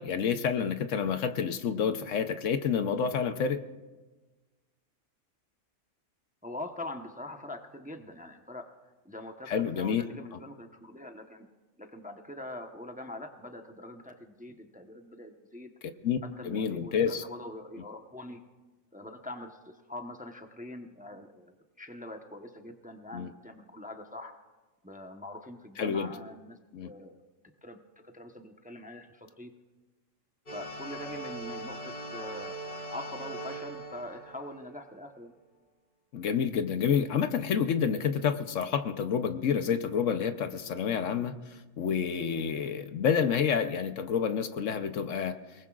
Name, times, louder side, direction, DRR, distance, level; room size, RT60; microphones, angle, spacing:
voice 1, 0.0-3.6 9.5-10.0 16.0-16.2 16.4-17.2 23.1-23.3 25.8-26.1 26.7-26.9 36.1-41.4 41.8-45.4, left 7 dB, 70° left, 9 dB, 1.1 m, -28 dB
voice 2, 6.4-8.7 9.0-11.5 11.8-15.7 16.2-18.4 18.9-24.3 24.8-26.6 26.8-27.2 27.6-27.8 28.0-29.5 30.5-32.6 32.9-35.3, left 1 dB, 5° right, 4 dB, 0.8 m, -43 dB
sound 1, 30.5-35.0, right 1 dB, 35° left, 5.3 m, -41 dB
29.0 x 19.5 x 2.4 m, 1.2 s
omnidirectional pair, 1.4 m